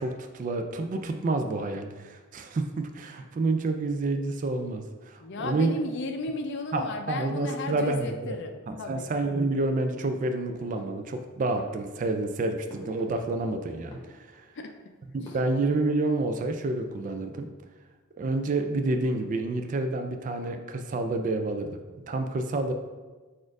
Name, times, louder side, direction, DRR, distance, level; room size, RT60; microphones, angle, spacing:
voice 1, 0.0-5.7 6.7-8.1 8.9-14.5 15.1-17.5 18.2-21.8 22.1-22.7, right 2 dB, 35° right, 6 dB, 0.3 m, -29 dB
voice 2, 5.2-9.1 14.5-14.7 15.2-15.4, left 3 dB, 55° left, 5 dB, 0.5 m, -34 dB
sound 1, 10.5-11.2 11.5-13.5 13.8-14.6 15.2-16.2 16.5-17.0, left 1 dB, 15° left, 0.9 m, -50 dB
4.2 x 2.5 x 4.6 m, 1.3 s
head